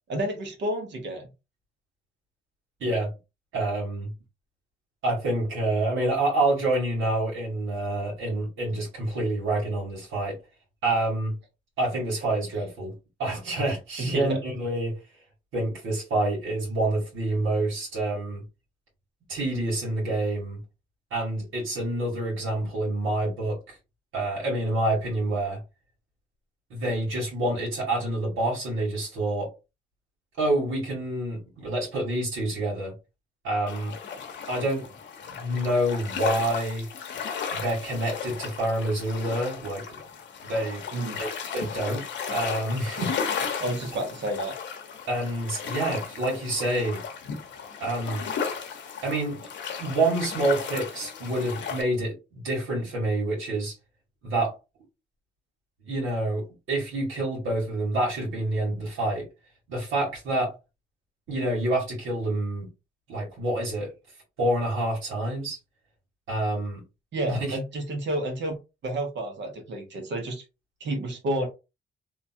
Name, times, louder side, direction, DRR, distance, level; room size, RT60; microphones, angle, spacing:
voice 1, 0.1-1.3 14.0-14.4 40.9-41.2 43.6-44.5 67.1-68.6 68.8-70.4 70.8-71.5, right 1 dB, 65° right, 1.2 m, -30 dB
voice 2, 2.8-3.1 3.5-4.1 5.0-10.4 10.8-11.4 11.8-12.9 13.2-14.9 15.5-18.4 19.3-20.6 21.1-23.8 24.1-25.6 26.7-29.5 30.4-32.9 33.4-33.9 34.5-34.9 35.3-36.9 37.5-40.0 40.4-40.8 41.2-43.6 45.1-47.0 47.8-48.3 49.0-49.5 49.8-53.7 54.2-54.5 55.8-59.2 59.7-60.5 61.3-62.7 63.1-63.9 64.4-65.6 66.3-66.8 67.3-67.6, right 1 dB, 85° right, 1.6 m, -27 dB
sound 1, 33.7-51.8, left 6 dB, 65° left, 0.8 m, -35 dB
2.9 x 2.3 x 2.7 m
cardioid pair, 90°, 20 cm